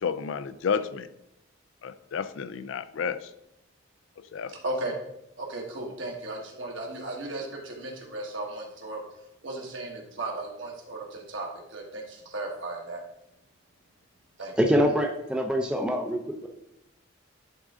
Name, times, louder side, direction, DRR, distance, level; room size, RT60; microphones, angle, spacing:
voice 1, 0.0-1.1 1.8-3.3 4.2-4.6, left 6 dB, 65° left, 13 dB, 0.4 m, -31 dB
voice 2, 4.5-5.0 5.4-9.0 9.4-13.0 14.4-14.5, right 2 dB, 65° right, 0 dB, 1.5 m, -35 dB
voice 3, 14.6-16.5, equal, 5° right, 2 dB, 0.4 m, -25 dB
10.5 x 3.7 x 3.6 m, 0.82 s
head